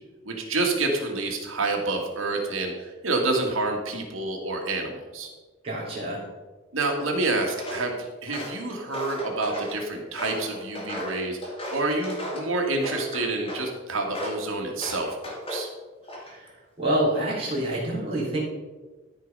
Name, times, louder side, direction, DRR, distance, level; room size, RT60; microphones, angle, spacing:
voice 1, 0.2-5.3 6.7-15.7, right 2 dB, 85° right, 1 dB, 2.0 m, -28 dB
voice 2, 5.6-6.2 16.1-18.4, right 1 dB, 30° right, -8 dB, 3.3 m, -27 dB
Walk footsteps, 7.5-7.9 8.3-9.8 10.2-12.5 12.8-13.7 14.1-14.4 14.8-15.7 16.0-16.5, left 1 dB, 25° left, 2.4 m, -35 dB
13.5 x 4.8 x 5.4 m, 1.3 s
head